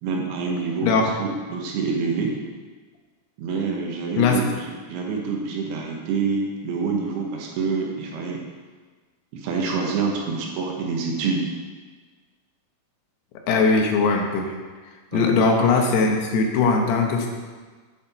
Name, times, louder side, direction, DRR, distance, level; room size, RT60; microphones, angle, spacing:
voice 1, 0.0-2.4 3.4-8.4 9.3-11.5 15.1-15.2, right 4 dB, 80° right, 0 dB, 3.1 m, -27 dB
voice 2, 13.5-14.6 15.1-17.3, left 4 dB, 85° left, 2 dB, 3.1 m, -20 dB
8.9 x 7.3 x 4.4 m, 1.4 s
omnidirectional pair, 4.6 m